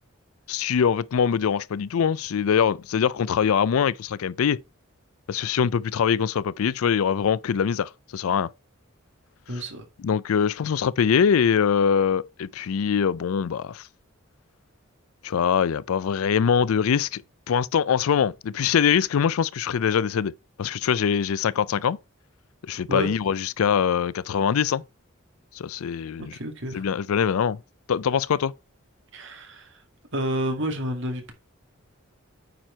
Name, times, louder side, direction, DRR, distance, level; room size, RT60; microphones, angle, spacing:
voice 1, 0.5-4.6 5.3-8.5 10.0-13.8 15.2-17.2 17.5-20.3 20.6-22.0 22.7-24.8 25.6-26.3 26.7-27.6 27.9-28.5, left 7 dB, 80° left, 0.4 m, -23 dB
voice 2, 9.5-9.8 22.9-23.1 26.3-26.8 29.1-29.7 30.1-31.3, right 1 dB, 60° right, 2.1 m, -29 dB
9.1 x 4.5 x 4.4 m
head